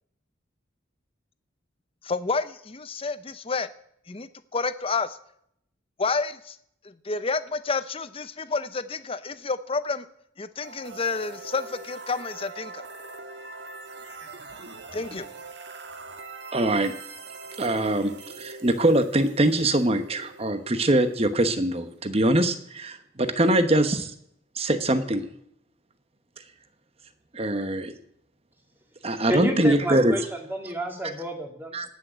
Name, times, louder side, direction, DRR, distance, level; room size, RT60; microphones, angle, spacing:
voice 1, 2.0-3.7 4.1-5.2 6.0-6.6 6.8-10.1 10.4-12.8 14.9-15.3, left 4 dB, 30° left, 13 dB, 0.6 m, -29 dB
sound 1, 10.6-22.4, right 3 dB, 60° right, 1.5 m, -43 dB
voice 2, 16.5-16.9 17.6-24.1 24.6-25.2 27.3-27.9 29.0-30.3 31.7-31.9, right 1 dB, 30° right, 9 dB, 1.1 m, -23 dB
voice 3, 29.3-30.2 30.5-31.8, right 1 dB, 10° right, 2 dB, 2.2 m, -30 dB
18.0 x 6.4 x 8.1 m, 0.72 s
head